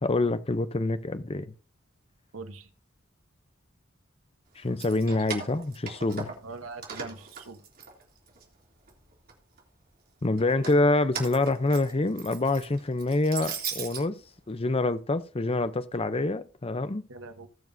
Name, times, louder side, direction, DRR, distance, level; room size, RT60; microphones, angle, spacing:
voice 1, 0.0-1.5 4.6-6.3 10.2-14.2 14.5-17.0, left 2 dB, 30° left, 0.7 m, -26 dB
voice 2, 2.3-2.7 6.4-7.6 17.1-17.5, right 3 dB, 85° right, 1.2 m, -42 dB
Keys jangling, 4.6-6.5 6.8-8.4 8.9-9.6 10.4-14.0, right 6 dB, 45° right, 3.0 m, -39 dB
19.5 x 7.2 x 2.7 m
head